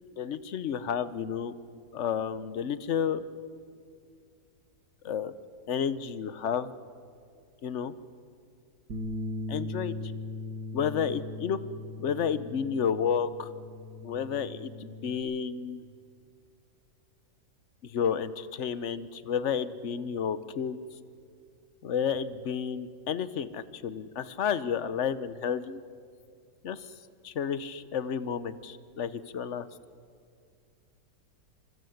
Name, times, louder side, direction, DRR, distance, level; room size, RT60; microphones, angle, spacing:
voice 1, 0.2-1.6 1.9-3.2 5.0-5.3 5.7-6.7 7.6-7.9 9.5-9.9 10.7-11.6 12.0-13.5 14.0-15.8 17.8-20.8 21.8-25.8 26.6-26.9 27.2-29.7, left 7 dB, 50° left, 14 dB, 1.1 m, -31 dB
Bass guitar, 8.9-15.1, left 1 dB, 80° right, 2.8 m, -39 dB
27.0 x 26.0 x 8.0 m, 2.3 s
omnidirectional pair, 1.8 m